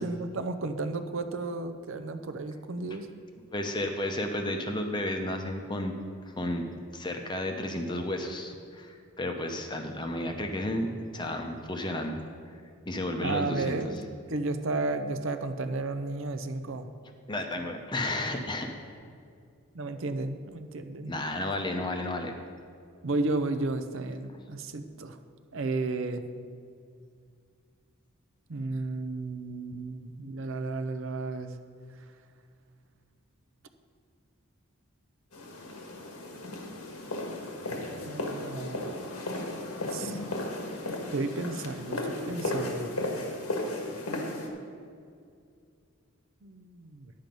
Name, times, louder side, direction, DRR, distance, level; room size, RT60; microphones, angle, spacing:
voice 1, 0.0-3.1 13.2-14.0 14.3-16.9 19.7-21.1 23.0-25.2 25.5-26.2 28.5-31.5 38.0-38.8 39.9-40.2 41.1-43.0 46.4-47.1, right 3 dB, 60° right, 9 dB, 0.6 m, -33 dB
voice 2, 3.5-5.9 6.3-6.6 6.9-12.2 12.9-13.9 17.3-18.7 21.0-22.3, left 1 dB, 20° left, 4 dB, 0.7 m, -32 dB
sound 1, 35.3-44.5, left 1 dB, 85° left, 1.6 m, -35 dB
10.5 x 7.7 x 5.3 m, 2.3 s
head